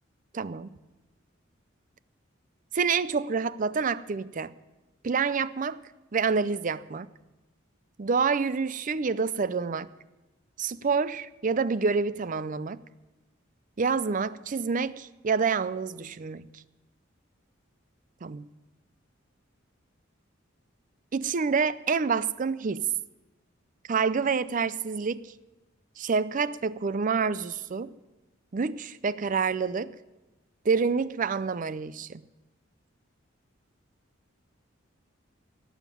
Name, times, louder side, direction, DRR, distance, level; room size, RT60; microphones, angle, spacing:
voice 1, 0.3-0.7 2.7-4.5 5.0-5.8 6.1-7.1 8.0-9.9 10.6-12.8 13.8-16.6 18.2-18.4 21.1-22.9 23.9-25.3 26.0-27.9 28.5-30.0 30.6-32.2, right 5 dB, 40° right, 0.5 m, -27 dB
17.5 x 7.2 x 9.2 m
head